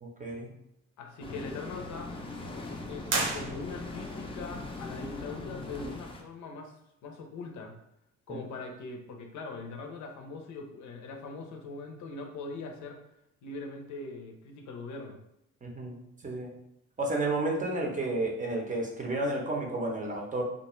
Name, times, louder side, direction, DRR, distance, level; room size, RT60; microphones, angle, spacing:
voice 1, 0.0-0.5 15.6-16.5 17.0-20.4, right 2 dB, 25° right, 0 dB, 0.6 m, -31 dB
voice 2, 1.0-2.1 2.8-6.7 7.0-7.7 8.3-13.0 13.4-15.2, left 3 dB, 70° left, 3 dB, 0.6 m, -41 dB
sound 1, 1.2-6.2, left 3 dB, 20° left, 0.4 m, -40 dB
sound 2, 3.1-4.1, right 3 dB, 90° right, 0.6 m, -32 dB
2.4 x 2.3 x 3.0 m, 0.79 s
cardioid pair, 90°, 30 cm